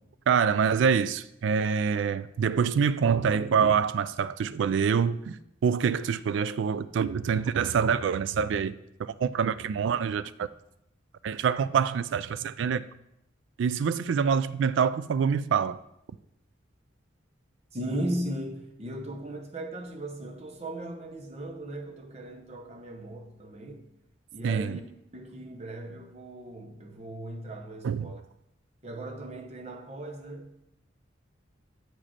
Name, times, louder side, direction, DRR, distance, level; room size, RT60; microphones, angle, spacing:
voice 1, 0.3-8.7 9.0-10.5 11.2-12.8 13.6-15.8 24.4-24.8 27.8-28.1, right 6 dB, 70° right, 0.3 m, -26 dB
voice 2, 17.7-23.9 24.3-24.8 25.1-28.2 28.8-30.6, right 1 dB, 35° right, 0.7 m, -37 dB
7.5 x 5.1 x 4.2 m
head